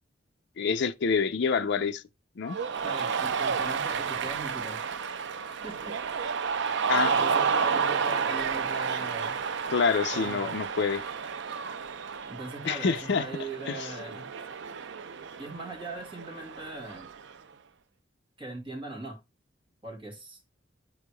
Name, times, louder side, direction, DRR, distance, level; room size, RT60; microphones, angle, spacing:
voice 1, 0.6-2.0 2.4-2.6 6.9-7.2 9.7-11.0 12.6-13.2 13.7-13.9, left 5 dB, 65° left, 0.5 m, -27 dB
Cheering, 2.5-17.3, right 6 dB, 65° right, 0.5 m, -31 dB
voice 2, 2.8-4.8 5.4-6.0 6.8-9.4 10.1-10.6 12.3-14.3 15.4-17.1 18.4-19.2 19.8-20.4, right 2 dB, 30° right, 2.3 m, -40 dB
10.5 x 5.0 x 2.3 m
head